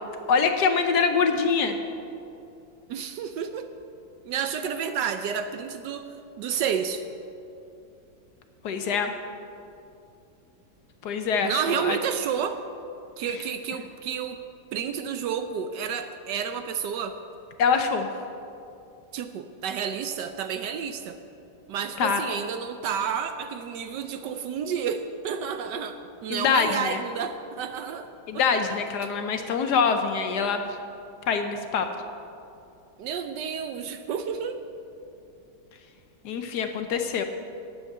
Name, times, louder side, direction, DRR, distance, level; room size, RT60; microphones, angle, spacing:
voice 1, 0.3-1.8 8.6-9.1 11.0-12.0 17.6-18.1 22.0-22.2 26.3-27.0 28.3-30.6 31.3-31.9 36.2-37.2, left 5 dB, 65° left, 6 dB, 1.1 m, -24 dB
voice 2, 2.9-3.7 4.2-6.1 6.4-7.0 11.4-12.6 13.2-14.4 14.7-17.2 19.1-21.2 21.7-28.1 28.3-28.4 28.7-29.1 33.0-34.6, right 7 dB, 70° right, 8 dB, 1.1 m, -30 dB
10.0 x 7.9 x 7.8 m, 2.7 s
omnidirectional pair, 2.1 m